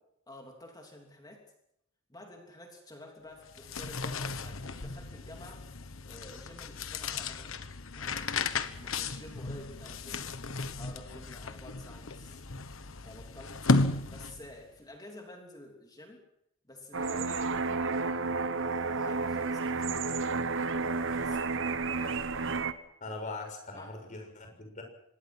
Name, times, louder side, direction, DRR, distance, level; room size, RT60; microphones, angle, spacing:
voice 1, 0.3-1.4 2.1-5.7 6.0-7.6 8.0-8.3 8.8-10.4 10.7-12.4 13.0-13.7 14.1-16.2 16.7-22.3 23.8-23.9, left 1 dB, 20° left, 1 dB, 3.2 m, -50 dB
sound 1, 3.4-14.6, left 3 dB, 70° left, 1.3 m, -34 dB
sound 2, 16.9-22.7, right 4 dB, 60° right, 1.2 m, -31 dB
voice 2, 23.0-24.8, left 3 dB, 35° left, 3 dB, 6.4 m, -41 dB
25.5 x 20.0 x 6.2 m, 0.76 s
head